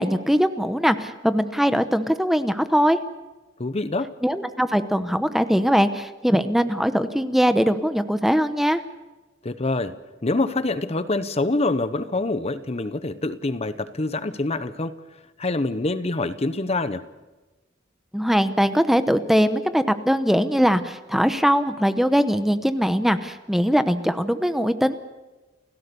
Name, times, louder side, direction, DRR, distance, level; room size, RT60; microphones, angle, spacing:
voice 1, 0.0-3.0 4.2-8.8 18.1-25.0, equal, ahead, 10 dB, 0.9 m, -21 dB
voice 2, 3.6-4.1 9.4-10.0 10.2-15.0 15.4-17.0, left 2 dB, 35° left, 13 dB, 0.9 m, -25 dB
29.5 x 16.5 x 7.0 m, 1.2 s
head